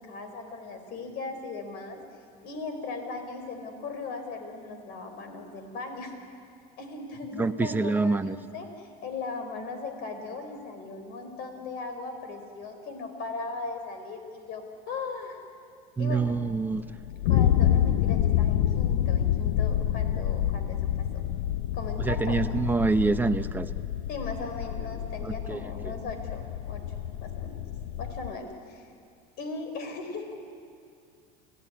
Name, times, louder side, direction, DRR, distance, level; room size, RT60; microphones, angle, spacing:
voice 1, 0.0-2.0 2.4-6.1 6.8-15.4 16.0-16.4 17.2-21.2 21.7-22.6 24.1-26.8 27.2-27.7 28.0-28.9 29.4-30.3, left 3 dB, 50° left, 6 dB, 4.5 m, -38 dB
voice 2, 7.4-8.4 16.0-16.8 22.0-23.7 25.2-25.6, right 3 dB, 10° right, 9 dB, 0.8 m, -26 dB
sound 1, 16.1-28.3, left 11 dB, 85° left, 0.7 m, -28 dB
29.0 x 16.5 x 9.9 m, 2.3 s
supercardioid pair, 135°, 20 cm